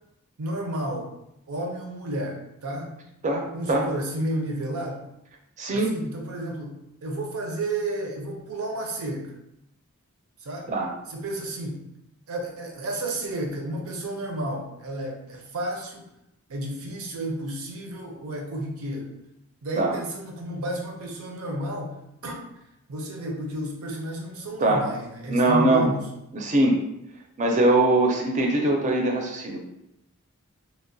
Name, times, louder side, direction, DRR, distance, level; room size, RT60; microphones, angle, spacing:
voice 1, 0.4-1.1 1.5-2.9 3.5-5.0 5.7-9.3 10.4-10.7 11.1-11.8 12.3-16.1 16.5-19.1 19.6-22.5 22.9-26.1, right 1 dB, 80° right, 1 dB, 0.6 m, -32 dB
voice 2, 3.2-3.9 5.6-5.9 10.7-10.9 19.8-19.9 24.6-24.9 25.3-25.9 26.3-26.8 27.4-29.6, right 2 dB, 35° right, 2 dB, 0.4 m, -22 dB
2.9 x 2.1 x 2.6 m, 0.84 s
head